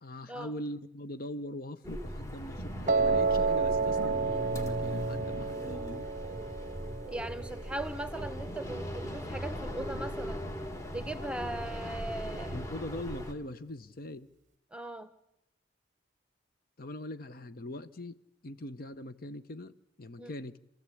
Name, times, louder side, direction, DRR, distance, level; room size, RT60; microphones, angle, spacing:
voice 1, 0.0-6.1 12.5-14.3 16.8-20.6, left 1 dB, 50° left, 0.8 m, -42 dB
sound 1, 1.8-13.3, equal, 15° left, 1.8 m, -39 dB
Piano, 2.9-9.0, right 4 dB, 40° right, 0.7 m, -31 dB
voice 2, 7.1-10.4 10.9-12.6 14.7-15.1 20.1-20.3, right 1 dB, 5° right, 1.1 m, -39 dB
27.5 x 14.5 x 8.5 m
head